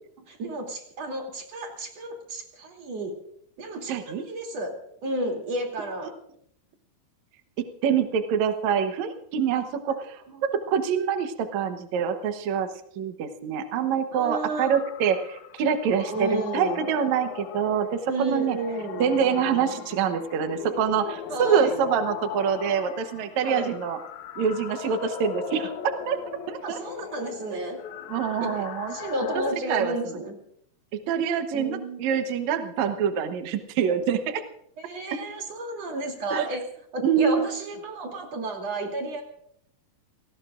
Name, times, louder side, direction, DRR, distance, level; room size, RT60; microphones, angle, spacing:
voice 1, 0.3-3.1 3.6-4.7 5.0-6.1 10.3-10.4 14.1-14.8 16.1-16.9 18.1-19.0 21.3-21.8 23.4-23.8 26.6-27.8 28.4-30.4 31.5-32.1 34.9-36.6 36.9-39.2, right 1 dB, 40° right, 1 dB, 3.6 m, -32 dB
voice 2, 3.9-4.2 7.8-12.7 13.0-18.6 19.0-24.0 24.4-26.2 26.5-26.8 28.1-29.0 29.7-30.2 31.1-34.4 36.3-36.5 37.0-37.4, right 7 dB, 75° right, 7 dB, 1.7 m, -25 dB
sound 1, 14.7-29.5, left 9 dB, 75° left, 1.7 m, -38 dB
29.0 x 18.5 x 2.5 m, 0.69 s
omnidirectional pair, 4.8 m